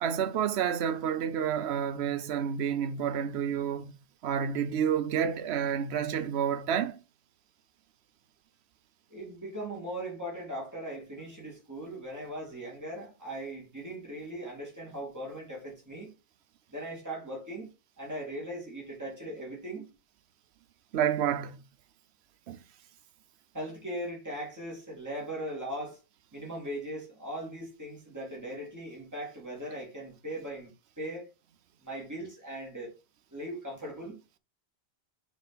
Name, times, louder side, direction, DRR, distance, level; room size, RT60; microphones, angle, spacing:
voice 1, 0.0-3.9 4.2-7.0 20.9-21.6 22.5-22.6, right 8 dB, 85° right, 0.9 m, -29 dB
voice 2, 9.1-16.1 16.7-17.7 18.0-19.9 23.5-26.0 26.3-31.3 31.8-32.9 33.3-34.2, right 1 dB, 15° right, 2.5 m, -39 dB
5.8 x 4.5 x 4.1 m
omnidirectional pair, 1.1 m